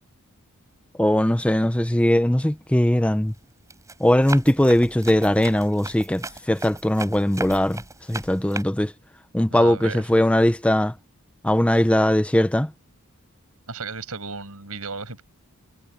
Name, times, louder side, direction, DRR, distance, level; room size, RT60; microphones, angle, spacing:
voice 1, 1.0-3.3 4.0-7.8 8.1-8.9 9.3-10.9 11.4-12.7, left 1 dB, 5° left, 0.6 m, -20 dB
Run, 2.5-2.9 3.4-8.6, right 2 dB, 15° right, 7.8 m, -37 dB
voice 2, 9.5-10.0 13.7-15.2, right 4 dB, 75° right, 6.1 m, -34 dB
head